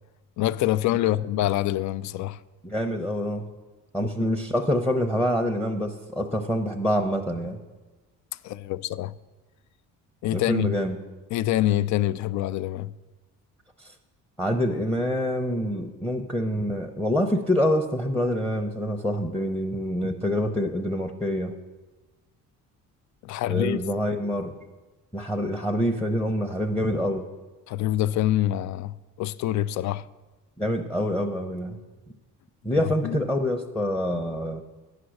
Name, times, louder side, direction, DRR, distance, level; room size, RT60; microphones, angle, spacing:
voice 1, 0.4-2.4 4.2-4.3 8.4-9.1 10.2-10.8 11.3-12.9 23.2-23.8 27.7-30.0 32.8-33.2, left 14 dB, 60° left, 0.4 m, -26 dB
voice 2, 2.6-3.5 3.9-7.6 10.3-11.0 13.8-13.9 14.4-21.5 23.5-24.5 25.1-27.3 30.6-31.8 32.6-34.6, equal, 5° left, 0.7 m, -26 dB
9.6 x 5.9 x 6.4 m
cardioid pair, 105°, 32 cm